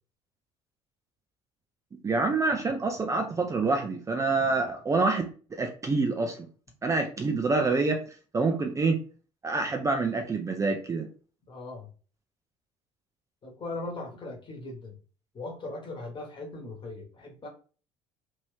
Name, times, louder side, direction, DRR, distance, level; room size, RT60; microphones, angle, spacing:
voice 1, 2.0-6.5 6.8-8.0 8.3-9.0 9.4-11.1, right 3 dB, 20° right, 4 dB, 0.5 m, -27 dB
voice 2, 11.5-11.9 13.4-14.9 15.3-17.5, left 2 dB, 30° left, 0 dB, 1.3 m, -39 dB
2.8 x 2.6 x 3.3 m, 0.38 s
figure-of-eight pair, 55°, 16 cm